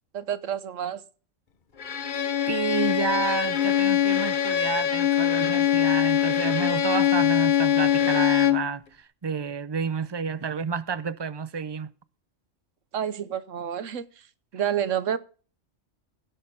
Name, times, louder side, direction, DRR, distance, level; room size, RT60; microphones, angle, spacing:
voice 1, 0.1-1.0 12.9-14.0 14.5-15.2, right 9 dB, 80° right, 1.3 m, -29 dB
Bowed string instrument, 1.8-8.7, left 10 dB, 45° left, 1.0 m, -23 dB
voice 2, 2.5-11.9, right 6 dB, 45° right, 0.3 m, -30 dB
17.0 x 6.7 x 5.3 m
omnidirectional pair, 1.3 m